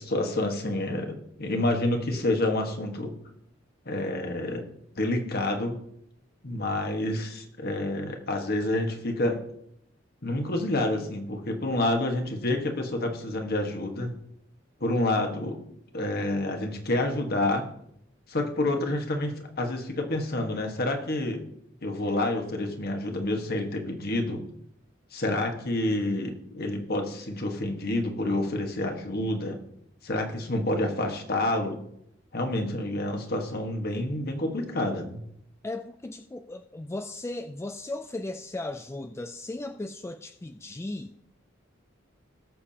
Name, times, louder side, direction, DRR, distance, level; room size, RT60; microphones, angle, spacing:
voice 1, 0.0-3.1 3.8-4.6 4.9-5.7 6.4-9.4 10.2-14.1 14.8-15.6 15.9-17.6 18.3-21.4 21.8-24.4 25.1-29.6 30.0-31.8 32.3-35.2, left 1 dB, 50° left, 3 dB, 1.5 m, -28 dB
voice 2, 35.6-41.1, left 2 dB, 15° left, 8 dB, 0.3 m, -36 dB
19.0 x 6.9 x 2.9 m, 0.75 s
head